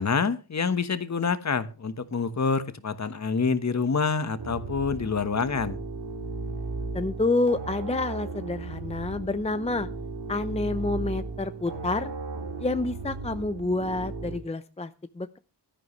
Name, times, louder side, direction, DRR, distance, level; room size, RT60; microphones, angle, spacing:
voice 1, 0.0-5.8, left 5 dB, 40° left, 1.3 m, -27 dB
sound 1, 4.4-14.4, right 3 dB, 75° right, 4.2 m, -36 dB
voice 2, 6.9-9.9 10.3-12.1 12.6-15.4, left 2 dB, 15° left, 0.6 m, -28 dB
16.0 x 12.5 x 3.2 m
wide cardioid pair, 135°, 41 cm